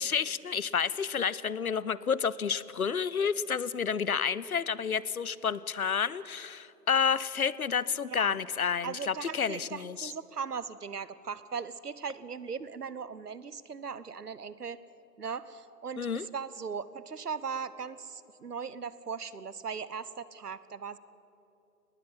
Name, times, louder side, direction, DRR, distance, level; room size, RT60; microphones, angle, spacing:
voice 1, 0.0-10.1 16.0-16.3, left 6 dB, 60° left, 19 dB, 0.7 m, -30 dB
voice 2, 8.8-14.8 15.2-21.0, right 6 dB, 70° right, 16 dB, 1.1 m, -38 dB
19.5 x 15.0 x 9.4 m, 2.9 s
figure-of-eight pair, 155°, 49 cm